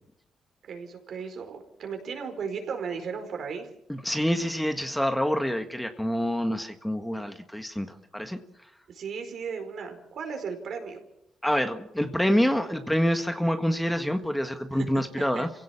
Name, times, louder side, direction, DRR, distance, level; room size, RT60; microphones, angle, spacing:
voice 1, 0.7-3.7 8.9-11.0 14.7-14.9 15.2-15.4, right 6 dB, 60° right, 5 dB, 4.7 m, -35 dB
voice 2, 3.9-8.4 11.4-15.5, equal, 5° left, 7 dB, 1.6 m, -27 dB
27.0 x 17.0 x 7.2 m, 0.80 s
cardioid pair, 90°, 0 cm